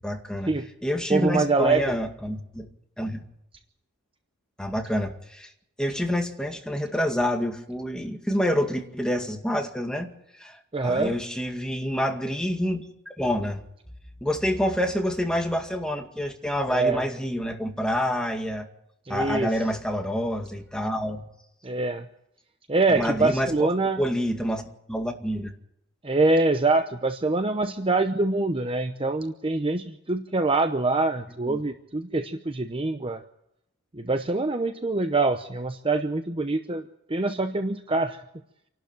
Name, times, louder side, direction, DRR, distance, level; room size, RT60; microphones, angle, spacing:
voice 1, 0.0-0.5 0.8-2.7 3.0-3.2 4.6-5.5 5.8-10.1 10.4-12.9 13.2-13.6 14.2-18.7 19.1-21.3 22.9-23.7 24.0-24.6 24.9-25.5 31.4-31.6, equal, 5° left, 3 dB, 2.1 m, -27 dB
voice 2, 1.1-1.8 10.7-11.1 16.7-17.0 19.1-19.5 21.6-22.1 22.7-24.0 26.0-33.2 33.9-36.8 37.1-38.2, right 3 dB, 25° right, 8 dB, 0.8 m, -24 dB
27.5 x 12.0 x 9.0 m, 0.79 s
head